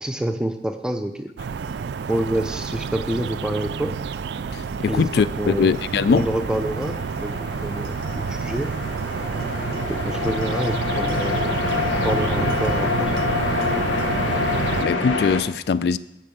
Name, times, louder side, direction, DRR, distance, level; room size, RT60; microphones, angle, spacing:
voice 1, 0.0-1.3 2.1-3.9 4.9-5.7 6.1-8.7 9.9-11.6 11.8-13.1, right 1 dB, 5° right, 7 dB, 0.5 m, -27 dB
sound 1, 1.4-14.8, right 5 dB, 70° right, 0.3 m, -29 dB
voice 2, 4.5-6.2 14.8-16.0, left 5 dB, 60° left, 15 dB, 0.3 m, -21 dB
sound 2, 5.2-15.4, left 4 dB, 90° left, 1.1 m, -27 dB
8.7 x 5.4 x 7.8 m, 0.81 s
head